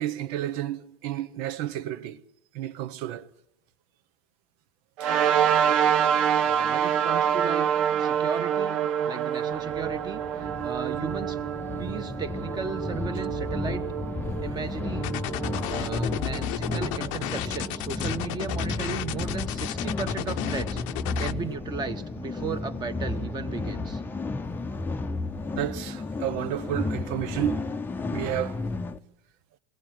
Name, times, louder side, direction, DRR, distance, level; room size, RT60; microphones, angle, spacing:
voice 1, 0.0-2.2 2.5-3.3 5.0-5.1 16.5-17.0 25.5-27.6 28.1-28.7, right 12 dB, 60° right, 1.1 m, -31 dB
sound 1, 5.0-17.7, right 9 dB, 80° right, 1.3 m, -27 dB
voice 2, 6.4-7.7 7.9-8.8 9.1-11.4 11.8-13.9 14.4-15.1 15.7-24.0, right 5 dB, 25° right, 1.5 m, -35 dB
sound 2, 9.5-29.0, left 3 dB, 10° left, 0.8 m, -33 dB
sound 3, 15.0-21.3, left 15 dB, 70° left, 0.8 m, -33 dB
22.5 x 17.5 x 9.0 m
supercardioid pair, 135°, 17 cm